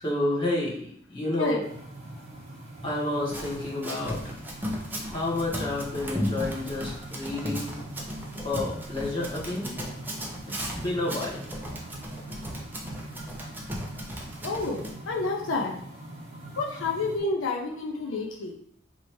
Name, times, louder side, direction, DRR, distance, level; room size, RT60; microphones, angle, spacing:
voice 1, 0.0-1.6 2.8-4.4 5.1-7.7 8.4-9.7 10.5-11.4, left 2 dB, 25° left, -7 dB, 1.2 m, -30 dB
sound 1, 1.6-17.2, right 1 dB, 35° right, 1.3 m, -43 dB
Run, 3.3-14.9, equal, 10° right, 0.5 m, -36 dB
voice 2, 14.4-15.7 16.6-18.5, left 3 dB, 80° left, 0 dB, 0.5 m, -29 dB
3.0 x 2.7 x 4.4 m, 0.65 s
head